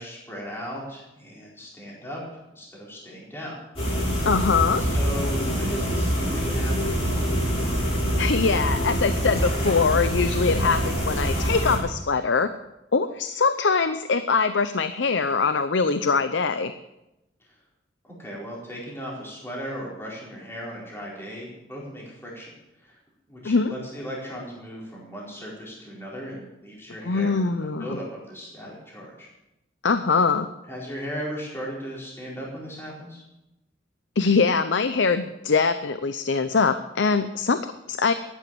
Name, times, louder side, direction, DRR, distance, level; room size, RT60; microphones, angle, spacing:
voice 1, 0.0-2.2 2.5-3.6 4.8-7.2 17.4-17.6 18.0-22.5 22.8-23.0 23.3-29.3 30.6-33.2, equal, 15° left, -5 dB, 4.4 m, -37 dB
sound 1, 3.8-11.8, equal, 35° left, 7.4 m, -25 dB
voice 2, 4.3-4.8 8.2-12.5 12.9-16.7 23.4-23.7 27.1-27.9 29.8-30.5 34.2-38.1, left 4 dB, 80° left, 11 dB, 0.7 m, -23 dB
14.0 x 11.0 x 7.8 m, 0.94 s
head